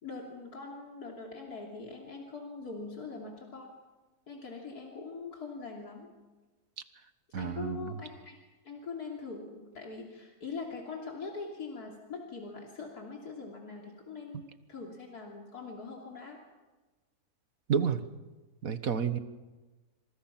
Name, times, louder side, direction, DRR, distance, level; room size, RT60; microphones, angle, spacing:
voice 1, 0.0-3.7 4.3-6.1 7.4-8.4 8.6-16.4, left 4 dB, 80° left, 0 dB, 3.5 m, -42 dB
voice 2, 7.3-7.9 17.7-18.0 18.6-19.2, right 7 dB, 65° right, 11 dB, 1.7 m, -30 dB
27.5 x 26.0 x 5.9 m, 1.2 s
omnidirectional pair, 1.6 m